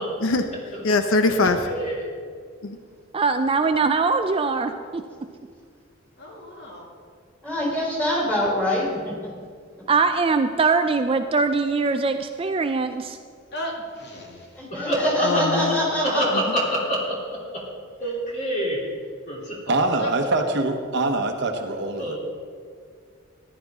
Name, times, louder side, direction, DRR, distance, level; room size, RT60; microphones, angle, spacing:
voice 1, 0.2-0.6 0.8-1.6 2.6-2.8 15.2-15.9 16.3-16.6, left 3 dB, 85° left, 8 dB, 0.7 m, -22 dB
voice 2, 1.7-2.1 6.5-6.6 14.7-15.7 16.0-17.6 18.0-18.8 19.2-19.6 22.0-22.2, equal, 35° left, -4 dB, 3.1 m, -26 dB
voice 3, 3.1-5.0 9.9-13.2, right 4 dB, 30° right, 7 dB, 0.4 m, -22 dB
voice 4, 6.2-6.9 13.5-14.5 18.0-18.2 20.0-20.3, equal, 55° left, -1 dB, 2.1 m, -35 dB
voice 5, 7.4-9.3 14.6-16.4, left 1 dB, 10° left, -3 dB, 3.4 m, -25 dB
voice 6, 19.7-22.2, right 2 dB, 60° right, 5 dB, 1.0 m, -24 dB
14.5 x 11.0 x 3.6 m, 2.1 s
head